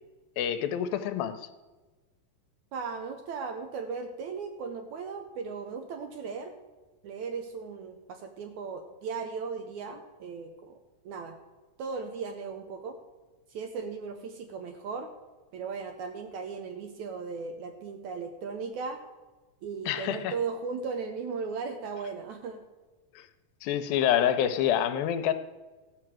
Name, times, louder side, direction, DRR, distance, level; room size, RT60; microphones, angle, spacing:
voice 1, 0.4-1.5 19.9-20.3 23.2-23.3 23.6-25.3, left 10 dB, 90° left, 10 dB, 2.5 m, -27 dB
voice 2, 2.7-6.5 7.0-10.8 11.0-11.4 11.8-13.0 13.5-15.1 15.5-19.0 19.6-22.6, right 5 dB, 75° right, 6 dB, 1.8 m, -37 dB
14.0 x 5.9 x 7.6 m, 1.2 s
omnidirectional pair, 4.1 m